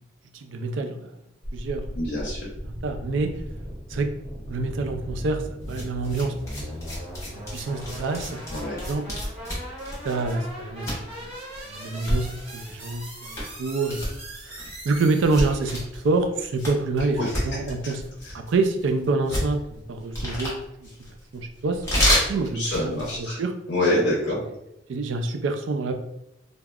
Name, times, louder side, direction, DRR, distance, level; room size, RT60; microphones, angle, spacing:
voice 1, 0.3-1.1 1.5-2.0 2.6-3.3 3.9-4.1 4.5-6.4 7.3-8.4 8.8-9.0 10.0-11.1 11.7-14.1 14.5-18.1 18.3-20.9 21.3-21.8 22.2-23.5 24.9-25.9, right 3 dB, 85° right, 6 dB, 0.4 m, -27 dB
sound 1, 1.4-15.8, equal, 30° right, 0.9 m, -38 dB
voice 2, 2.0-2.4 8.5-8.8 17.2-17.3 17.8-17.9 22.5-23.4 23.7-24.4, left 1 dB, 65° left, -5 dB, 0.7 m, -25 dB
sound 2, 5.6-23.2, equal, 15° left, 0.9 m, -31 dB
3.4 x 2.0 x 2.3 m, 0.82 s
head